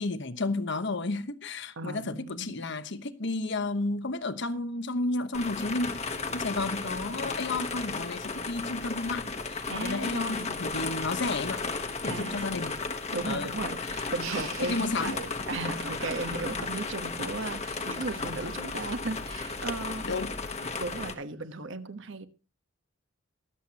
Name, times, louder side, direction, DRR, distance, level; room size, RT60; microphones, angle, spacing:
voice 1, 0.0-6.0 6.3-11.7 12.0-12.8 13.2-13.5 13.8-14.0 14.6-15.2 20.0-20.4, left 2 dB, 55° left, 1.1 m, -32 dB
voice 2, 1.8-2.8 9.7-10.8 12.1-12.7 13.1-20.1 20.8-22.3, right 3 dB, 60° right, 1.2 m, -36 dB
sound 1, 5.3-21.1, left 4 dB, 30° left, 1.2 m, -34 dB
sound 2, 14.2-15.5 16.0-17.2, right 8 dB, 85° right, 1.8 m, -44 dB
23.5 x 8.0 x 2.9 m
head